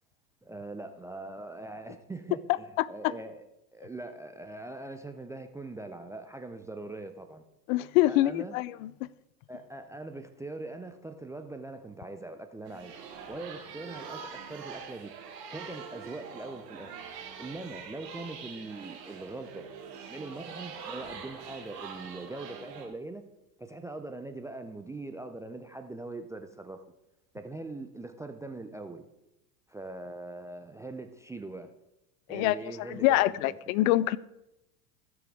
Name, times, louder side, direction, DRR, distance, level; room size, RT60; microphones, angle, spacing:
voice 1, 0.4-3.4 3.7-7.4 8.1-8.6 9.5-12.9 13.3-15.1 15.5-16.9 17.4-19.6 20.1-23.2 23.6-26.8 27.3-29.0 29.7-31.7 32.3-33.6, right 2 dB, 5° right, 0.3 m, -42 dB
voice 2, 7.7-8.9 32.3-32.5 33.0-34.2, left 16 dB, 60° left, 0.5 m, -25 dB
sound 1, 12.6-22.9, right 6 dB, 85° right, 2.1 m, -44 dB
16.5 x 6.2 x 3.5 m
hypercardioid pair, 85°, 48 cm